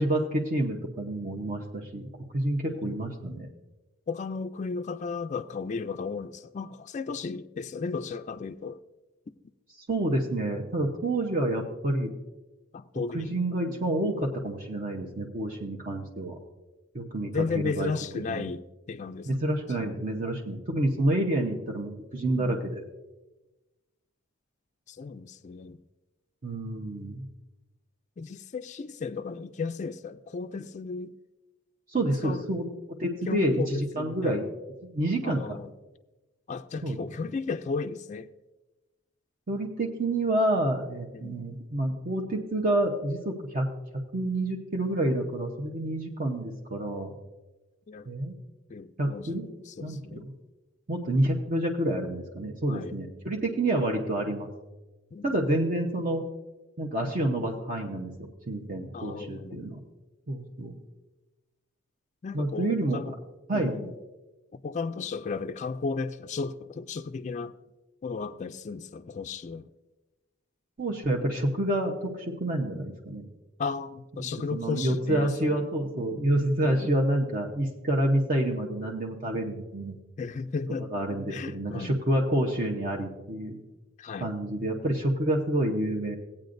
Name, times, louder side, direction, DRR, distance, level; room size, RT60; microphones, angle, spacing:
voice 1, 0.0-2.1 2.3-3.5 9.9-12.1 13.1-16.4 16.9-17.9 18.3-18.4 19.3-22.8 26.4-27.2 31.9-34.5 34.9-35.4 36.8-37.0 39.5-43.7 44.1-47.1 48.1-48.3 49.0-49.5 49.8-50.3 50.9-54.5 55.2-56.3 56.8-58.1 58.5-59.8 60.3-60.8 62.3-63.1 63.5-63.8 70.8-73.2 74.5-79.9 80.9-83.6 84.2-86.2, right 1 dB, 45° right, 0.9 m, -28 dB
voice 2, 2.7-3.1 4.1-8.8 12.7-13.4 17.3-19.3 19.7-19.9 22.3-22.6 24.9-25.8 28.2-31.2 32.2-32.4 33.3-34.4 35.2-35.7 36.5-38.3 41.1-41.5 47.9-48.1 48.7-50.3 52.7-52.9 55.1-55.6 58.9-59.7 62.2-63.2 63.5-63.9 64.5-67.5 68.0-69.7 73.6-75.6 76.6-76.9 80.2-80.9 81.3-82.0 84.0-84.3, left 4 dB, 35° left, 0.3 m, -35 dB
17.5 x 8.7 x 2.6 m
head